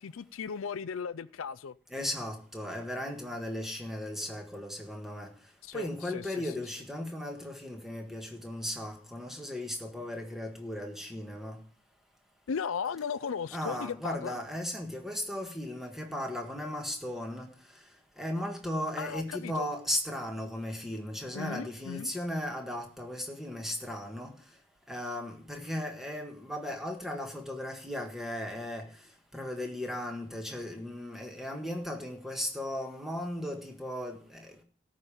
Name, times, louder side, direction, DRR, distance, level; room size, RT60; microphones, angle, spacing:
voice 1, 0.0-1.7 5.6-6.2 12.5-14.4 19.0-19.7 21.3-22.1, left 6 dB, 85° left, 0.5 m, -36 dB
voice 2, 1.9-5.3 5.7-11.6 13.5-17.5 18.2-24.3 24.9-28.9 29.3-34.6, left 1 dB, ahead, 1.6 m, -36 dB
13.5 x 5.1 x 8.9 m
head